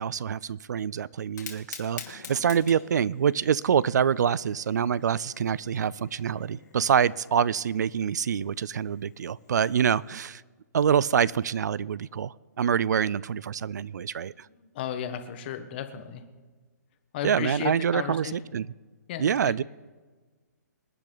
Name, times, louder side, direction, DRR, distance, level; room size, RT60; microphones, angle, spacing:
voice 1, 0.0-10.4 10.7-14.3 17.2-18.7 19.2-19.6, right 8 dB, 75° right, 23 dB, 0.4 m, -26 dB
Fire, 1.2-10.1, left 6 dB, 80° left, 2.7 m, -48 dB
voice 2, 14.5-16.2 17.1-18.5 19.1-19.6, left 9 dB, 35° left, 9 dB, 1.2 m, -35 dB
26.5 x 9.0 x 4.0 m, 1.4 s
hypercardioid pair, 160°, 10 cm